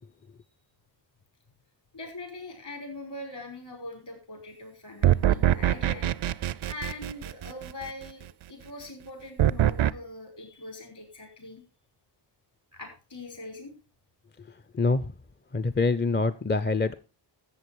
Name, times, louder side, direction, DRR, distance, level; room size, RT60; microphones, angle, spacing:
voice 1, 1.9-6.1 6.7-11.6 12.7-13.7, left 2 dB, 60° left, 4 dB, 5.6 m, -42 dB
sound 1, 5.0-7.9 9.4-9.9, right 11 dB, 90° right, 0.6 m, -23 dB
voice 2, 14.7-15.1 15.5-16.9, left 3 dB, 25° left, 13 dB, 0.5 m, -25 dB
14.0 x 7.9 x 4.6 m, 0.31 s
wide cardioid pair, 110°, 46 cm